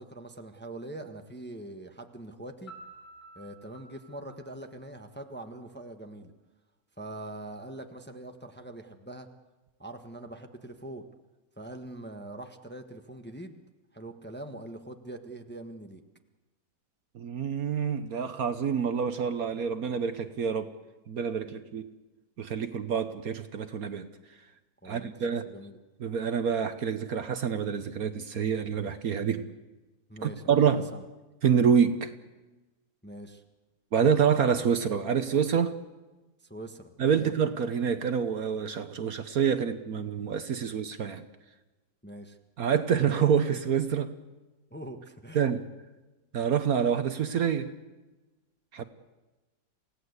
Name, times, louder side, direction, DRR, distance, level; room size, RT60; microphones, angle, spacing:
voice 1, 0.0-2.7 3.3-6.3 7.0-9.3 9.8-11.0 11.6-13.6 13.9-16.0 21.4-21.6 24.8-25.8 30.1-31.0 33.0-33.4 36.4-37.4 42.0-42.4 44.7-45.4, right 1 dB, 5° left, 5 dB, 1.1 m, -43 dB
Piano, 2.7-5.5, right 2 dB, 55° left, 6.8 m, -51 dB
voice 2, 17.1-20.7 21.1-21.9 22.4-24.1 24.8-25.5 26.0-29.5 30.2-30.9 31.4-32.1 33.9-35.8 37.0-41.2 42.6-44.1 45.3-45.7 46.3-47.7 48.7-48.8, right 7 dB, 60° right, 10 dB, 1.3 m, -27 dB
28.5 x 17.0 x 8.1 m, 1.1 s
omnidirectional pair, 1.9 m